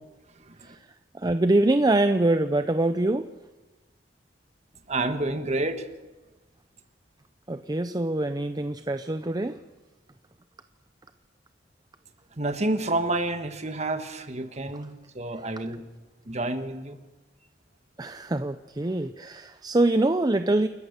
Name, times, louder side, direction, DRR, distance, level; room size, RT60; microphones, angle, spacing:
voice 1, 0.3-0.8 4.9-5.9 12.3-15.8 16.2-17.0, right 2 dB, 40° right, 9 dB, 1.4 m, -29 dB
voice 2, 1.1-3.3 7.5-9.6 18.0-20.7, right 2 dB, 20° right, 10 dB, 0.6 m, -24 dB
29.0 x 14.0 x 6.7 m, 1.2 s
head